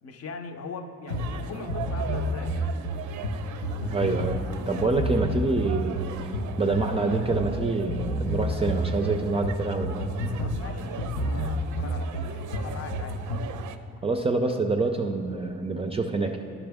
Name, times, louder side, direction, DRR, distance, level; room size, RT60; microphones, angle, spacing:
voice 1, 0.0-2.9 10.4-13.2, left 4 dB, 55° left, 7 dB, 0.6 m, -41 dB
sound 1, 1.1-13.6, equal, 80° left, 1.0 m, -30 dB
sound 2, 1.1-13.8, right 7 dB, 75° right, 0.5 m, -40 dB
voice 2, 3.8-6.3 6.6-10.0 14.0-16.4, right 3 dB, 20° right, 3 dB, 0.4 m, -26 dB
11.0 x 5.9 x 3.5 m, 2.6 s
cardioid pair, 90°, 30 cm